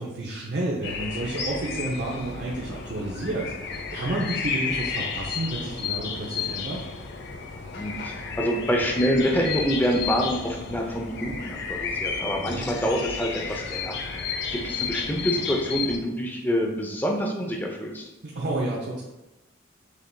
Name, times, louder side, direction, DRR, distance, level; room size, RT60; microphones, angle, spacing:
voice 1, 0.0-6.8 12.4-12.7 18.2-19.0, right 2 dB, 55° right, -4 dB, 0.6 m, -30 dB
sound 1, 0.8-16.0, left 5 dB, 55° left, 0.5 m, -32 dB
voice 2, 7.7-13.9 14.5-18.1, equal, 10° left, 1 dB, 0.5 m, -26 dB
6.3 x 3.5 x 2.2 m, 0.98 s
head